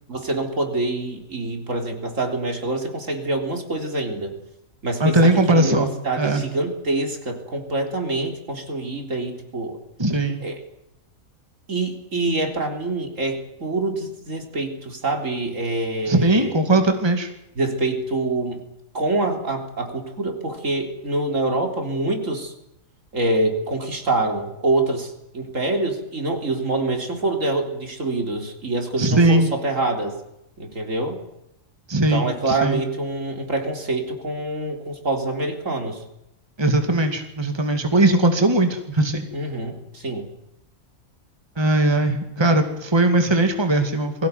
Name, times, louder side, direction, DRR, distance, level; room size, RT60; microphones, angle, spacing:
voice 1, 0.1-4.3 4.8-9.8 10.4-10.6 11.7-16.5 17.6-18.6 18.9-22.5 23.1-30.2 30.6-31.2 32.1-36.0 39.3-40.3, right 2 dB, 65° right, 4 dB, 4.1 m, -25 dB
voice 2, 5.0-5.9 6.2-6.4 10.0-10.4 16.1-17.3 29.0-29.5 31.9-32.8 36.6-39.3 41.6-44.3, right 2 dB, 20° right, 6 dB, 2.3 m, -19 dB
22.5 x 17.0 x 9.4 m, 0.84 s
omnidirectional pair, 1.4 m